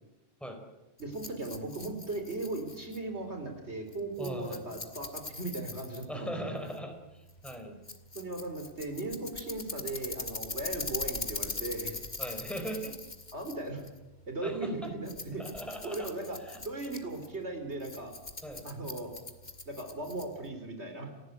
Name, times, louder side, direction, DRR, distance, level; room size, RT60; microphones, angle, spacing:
Rattle, 1.0-20.5, left 3 dB, 45° left, 2.0 m, -42 dB
voice 1, 1.0-6.6 7.6-7.8 8.1-12.0 13.3-13.8 14.3-15.5 15.8-16.4 16.6-18.1 18.6-19.1 19.7-21.1, right 2 dB, 90° right, 5 dB, 4.3 m, -37 dB
voice 2, 4.2-4.6 6.1-7.7 12.2-13.0 14.4-14.9 15.4-16.1 16.4-16.6 18.4-18.6, equal, ahead, 4 dB, 4.2 m, -39 dB
29.5 x 15.5 x 8.2 m, 1.0 s
omnidirectional pair, 1.1 m